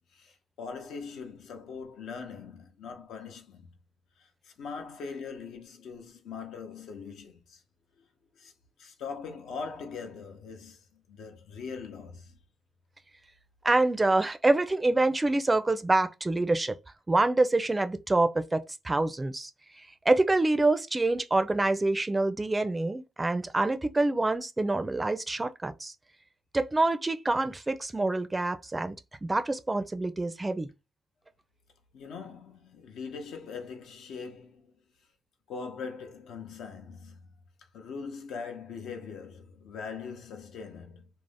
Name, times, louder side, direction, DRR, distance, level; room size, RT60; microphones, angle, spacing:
voice 1, 0.1-3.7 4.2-7.6 8.4-8.5 8.8-12.4 31.9-34.7 35.5-37.4 37.7-41.1, left 5 dB, 80° left, 0.6 m, -41 dB
voice 2, 13.6-16.7 17.1-19.5 20.1-25.9 26.5-29.0 29.2-30.7, right 2 dB, 20° right, 0.4 m, -26 dB
2.5 x 2.0 x 3.3 m
cardioid pair, 90°, 0 cm